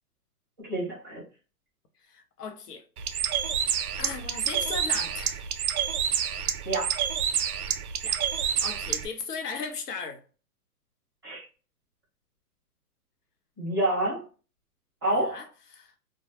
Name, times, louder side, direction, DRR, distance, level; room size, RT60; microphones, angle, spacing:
voice 1, 0.6-1.2 6.6-6.9 11.2-11.4 13.6-14.2 15.0-15.4, right 1 dB, 15° right, 0.5 m, -28 dB
voice 2, 2.0-3.3 4.0-5.5 8.0-10.2 15.1-15.9, left 5 dB, 80° left, 0.8 m, -38 dB
Bird, 3.0-9.1, right 8 dB, 70° right, 0.5 m, -28 dB
2.2 x 2.1 x 2.8 m
hypercardioid pair, 160°, 46 cm